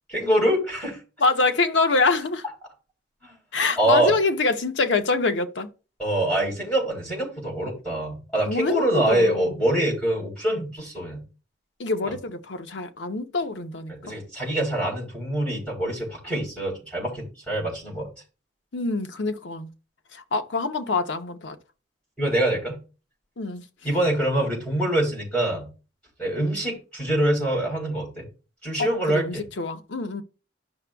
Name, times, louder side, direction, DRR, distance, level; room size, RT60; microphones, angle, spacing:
voice 1, 0.1-1.0 3.2-3.3 3.8-4.1 6.0-11.2 13.9-18.1 22.2-22.8 23.8-25.7 26.2-28.3 28.6-29.4, right 1 dB, 5° left, 4.0 m, -25 dB
voice 2, 1.2-2.4 3.5-5.7 8.4-9.6 11.8-14.1 18.7-19.7 20.1-21.6 23.4-23.6 28.8-30.2, left 3 dB, 85° left, 0.8 m, -25 dB
11.5 x 5.9 x 2.3 m
head